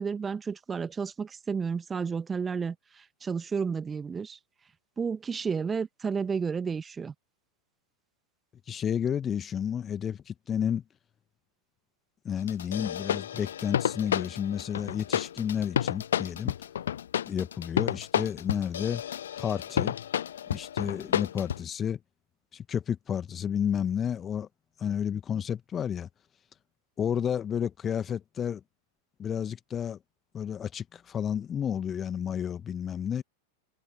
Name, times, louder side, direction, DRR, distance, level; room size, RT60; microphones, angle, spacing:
voice 1, 0.0-4.4 5.0-7.1, right 5 dB, 15° right, 1.8 m, -32 dB
voice 2, 8.7-10.8 12.2-16.5 17.3-19.0 19.4-20.0 20.5-22.0 22.5-24.5 24.8-26.1 27.0-28.6 29.2-30.0 30.3-33.2, left 8 dB, 25° left, 1.8 m, -31 dB
sound 1, 12.5-21.6, left 10 dB, 65° left, 0.5 m, -31 dB
figure-of-eight pair, 90°, 0 cm